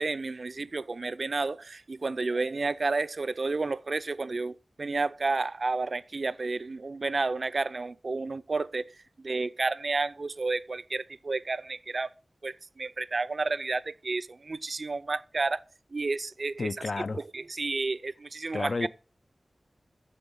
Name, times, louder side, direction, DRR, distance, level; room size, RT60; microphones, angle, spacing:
voice 1, 0.0-8.9 9.2-12.1 12.4-15.6 15.9-16.7 17.1-18.9, right 3 dB, 60° right, 0.5 m, -31 dB
voice 2, 16.6-17.2 18.5-18.9, left 3 dB, 65° left, 0.4 m, -31 dB
10.0 x 7.1 x 5.4 m
wide cardioid pair, 70°, 0 cm